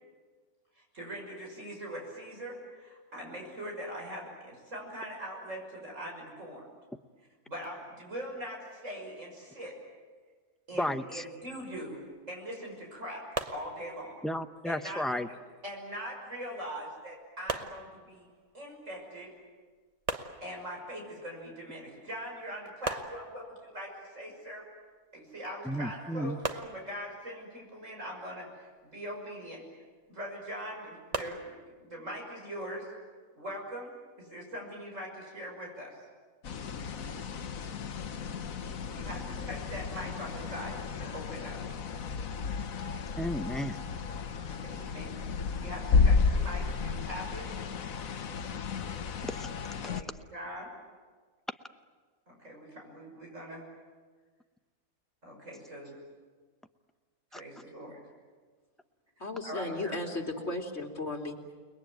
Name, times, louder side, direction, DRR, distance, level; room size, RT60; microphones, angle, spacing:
voice 1, 0.8-6.6 7.5-9.7 10.7-13.2 13.5-14.2 14.6-15.2 15.6-18.3 18.5-19.3 20.4-24.6 25.1-29.6 30.1-31.4 31.8-32.9 33.3-35.9 38.9-41.6 44.6-45.1 45.6-47.4 49.8-50.7 52.3-53.6 55.2-56.0 57.3-58.1 59.4-60.0, equal, 55° right, -1 dB, 6.4 m, -42 dB
voice 2, 10.8-11.2 14.2-15.3 25.6-26.4 43.2-43.8 49.4-49.5 57.3-57.4, equal, ahead, 8 dB, 0.5 m, -33 dB
sound 1, 13.4-14.3 17.5-18.5 20.1-21.1 22.8-23.8 26.4-27.4 31.1-31.7, right 3 dB, 25° right, 1.0 m, -39 dB
sound 2, 36.4-50.0, left 5 dB, 70° left, 1.5 m, -32 dB
voice 3, 59.2-61.5, left 2 dB, 45° left, 1 dB, 3.3 m, -35 dB
30.0 x 21.0 x 9.3 m, 1.4 s
omnidirectional pair, 1.5 m